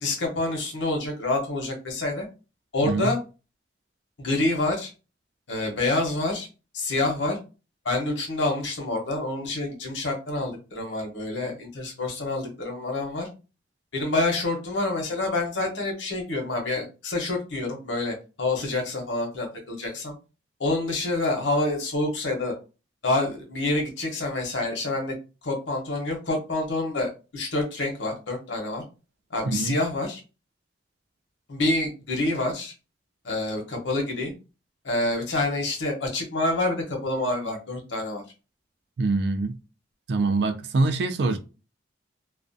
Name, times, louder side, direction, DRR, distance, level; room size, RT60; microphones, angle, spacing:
voice 1, 0.0-2.3 2.7-3.2 4.2-4.9 5.5-6.5 6.7-7.4 7.8-13.3 13.9-20.1 20.6-22.5 23.0-25.1 25.4-28.8 29.3-30.2 31.5-32.7 33.2-34.3 34.8-38.2, left 2 dB, 85° left, 0.8 m, -27 dB
voice 2, 29.5-29.8 39.0-39.6 40.1-41.4, right 3 dB, 70° right, 0.4 m, -24 dB
2.4 x 2.1 x 2.5 m
head